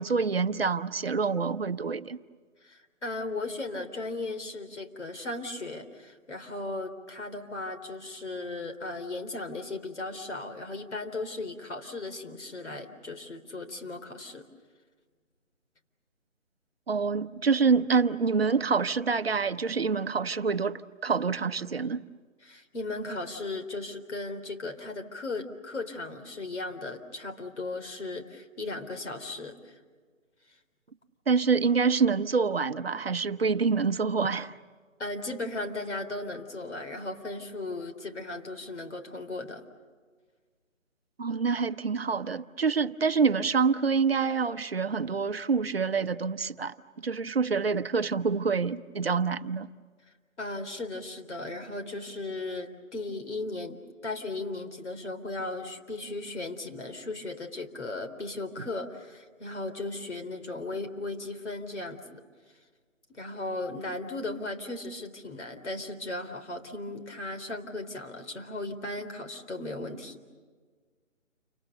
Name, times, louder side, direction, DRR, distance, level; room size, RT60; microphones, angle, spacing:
voice 1, 0.0-2.2 16.9-22.1 31.3-34.5 41.2-46.8 47.0-49.7, right 5 dB, 50° right, 0.9 m, -26 dB
voice 2, 2.6-14.5 22.4-29.8 35.0-39.6 50.4-62.2 63.1-70.2, left 2 dB, 60° left, 4.0 m, -36 dB
29.5 x 27.0 x 6.8 m
figure-of-eight pair, 160°, 39 cm